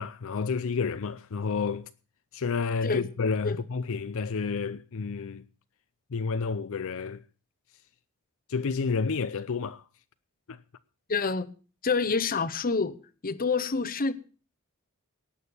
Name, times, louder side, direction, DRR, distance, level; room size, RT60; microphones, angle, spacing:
voice 1, 0.0-1.9 2.3-5.4 6.1-7.2 8.5-9.8 10.5-10.6, left 5 dB, 65° left, 0.6 m, -30 dB
voice 2, 11.1-11.5 11.8-13.0 13.2-14.1, left 4 dB, 40° left, 0.9 m, -27 dB
18.5 x 6.5 x 7.0 m
head